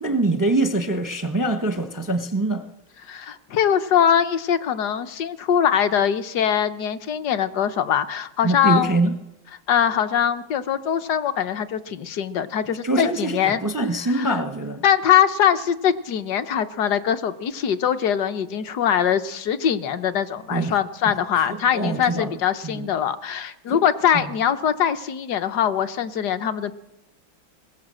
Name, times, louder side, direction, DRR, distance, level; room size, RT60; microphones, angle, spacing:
voice 1, 0.0-2.6 8.4-9.1 12.8-14.8 20.5-20.7 21.3-21.4 21.7-22.4 22.6-22.9 23.7-23.8 24.1-24.3, right 2 dB, 20° right, 0.4 m, -24 dB
voice 2, 3.1-9.0 9.7-13.6 14.1-14.4 14.8-26.7, left 9 dB, 60° left, 1.3 m, -22 dB
21.0 x 17.0 x 7.6 m
omnidirectional pair, 2.2 m